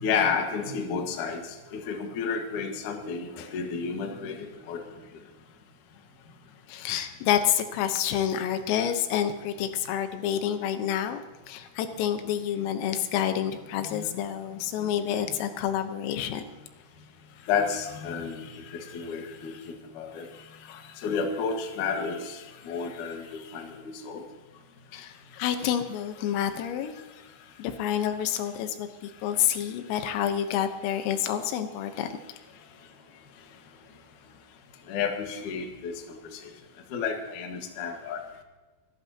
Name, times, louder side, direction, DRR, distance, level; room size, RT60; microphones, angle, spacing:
voice 1, 0.0-1.4 1.7-4.8 13.9-14.1 17.5-20.3 20.7-24.2 34.9-36.2 36.9-38.2, left 6 dB, 55° left, 3 dB, 2.3 m, -31 dB
voice 2, 6.7-11.2 11.5-16.5 24.9-27.0 27.6-32.1, left 10 dB, 90° left, 8 dB, 3.8 m, -28 dB
26.0 x 12.0 x 2.9 m, 1.3 s
omnidirectional pair, 5.8 m